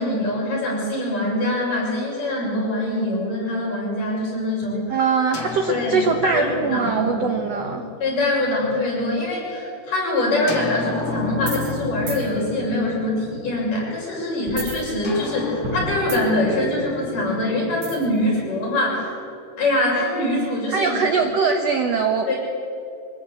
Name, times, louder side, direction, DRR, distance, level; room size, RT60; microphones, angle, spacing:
voice 1, 0.0-5.0 5.7-19.1 19.6-21.0 22.3-22.4, left 1 dB, 50° left, -4 dB, 8.6 m, -24 dB
voice 2, 4.9-7.8 20.7-22.3, right 5 dB, 70° right, 4 dB, 1.5 m, -22 dB
sound 1, 5.3-9.1 10.5-14.0 15.0-19.2, left 4 dB, 35° left, 2.5 m, -33 dB
sound 2, 11.4-11.8 12.1-12.2 14.5-15.3 15.6-16.5 17.8-18.2, right 3 dB, 90° right, 5.0 m, -32 dB
25.0 x 17.5 x 8.4 m, 2.7 s
omnidirectional pair, 4.7 m